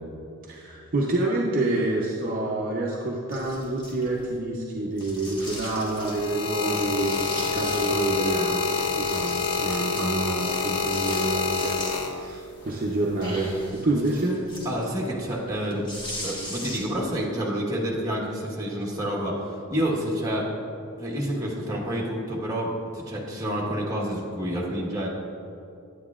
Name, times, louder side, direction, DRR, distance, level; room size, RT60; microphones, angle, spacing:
voice 1, 0.5-8.7 9.0-11.8 12.1-14.4, right 2 dB, 40° right, -3 dB, 0.6 m, -27 dB
sound 1, 3.3-4.3 4.9-6.3 6.7-8.3 8.6-12.2 12.6-17.1, left 1 dB, 20° left, 1.4 m, -40 dB
sound 2, 5.7-12.5 13.4-13.7, left 5 dB, 90° left, 0.6 m, -27 dB
voice 2, 14.6-15.9 16.2-20.5 21.0-25.1, equal, 15° right, -3 dB, 1.2 m, -28 dB
9.3 x 9.3 x 2.4 m, 2.7 s
head